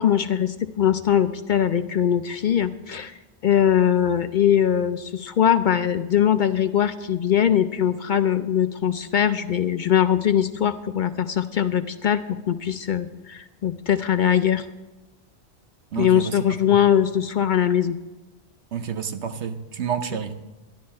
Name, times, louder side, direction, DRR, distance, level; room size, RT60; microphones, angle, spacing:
voice 1, 0.0-3.2 3.4-12.2 12.5-14.7 15.9-18.0, left 9 dB, 60° left, 11 dB, 0.6 m, -21 dB
voice 2, 15.9-16.8 18.7-20.3, right 8 dB, 85° right, 9 dB, 1.2 m, -29 dB
12.5 x 11.5 x 4.2 m, 1.1 s
omnidirectional pair, 1.1 m